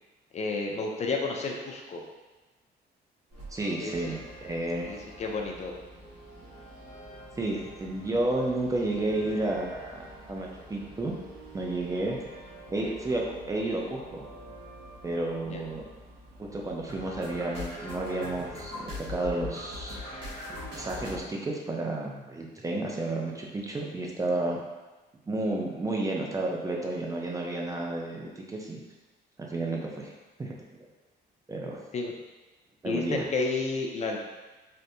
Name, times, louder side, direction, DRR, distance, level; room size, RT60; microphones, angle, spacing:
voice 1, 0.3-2.0 3.8-4.2 4.8-5.7 15.5-15.6 31.9-32.1 32.8-34.3, left 3 dB, 40° left, 1 dB, 0.4 m, -31 dB
sound 1, 3.3-21.2, left 1 dB, 75° right, 1.3 m, -44 dB
voice 2, 3.5-4.9 7.4-11.1 11.5-12.2 12.7-14.2 15.0-15.8 16.4-20.0 20.5-24.6 25.3-28.8 29.5-30.1 30.4-30.6 31.5-31.8 32.8-33.3, right 2 dB, 20° right, -1 dB, 0.4 m, -31 dB
sound 2, 3.9-21.2, equal, 60° right, 0.8 m, -53 dB
3.4 x 2.6 x 2.6 m, 1.2 s
cardioid pair, 125°, 18 cm